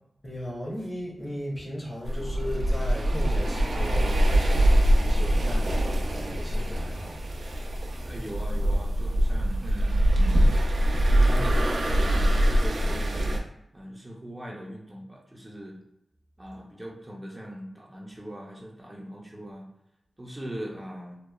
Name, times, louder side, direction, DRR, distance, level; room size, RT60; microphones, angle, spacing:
voice 1, 0.2-7.2, equal, 35° left, -3 dB, 0.8 m, -36 dB
sound 1, 2.0-13.4, right 1 dB, 75° right, 0.4 m, -23 dB
voice 2, 8.0-10.5 11.0-13.4 13.7-15.8 16.4-19.7 20.2-21.2, equal, 15° right, -2 dB, 0.4 m, -40 dB
3.0 x 2.0 x 2.2 m, 0.84 s
wide cardioid pair, 85°, 0 cm